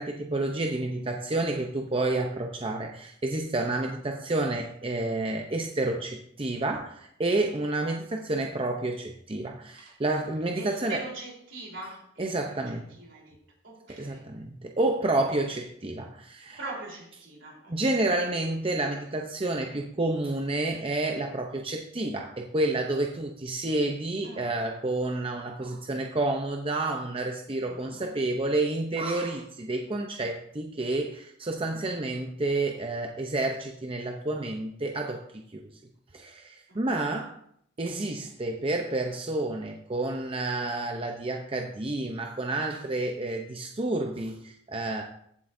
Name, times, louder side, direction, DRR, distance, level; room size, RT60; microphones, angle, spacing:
voice 1, 0.0-11.0 12.2-12.9 13.9-16.6 17.7-35.6 36.1-37.3 37.8-45.0, right 2 dB, 30° right, 0.7 m, -30 dB
voice 2, 10.6-13.4 13.6-14.3 16.6-18.1 24.2-24.5 27.6-28.1 36.7-36.8, right 3 dB, 70° right, 3.8 m, -42 dB
14.5 x 7.7 x 2.7 m
head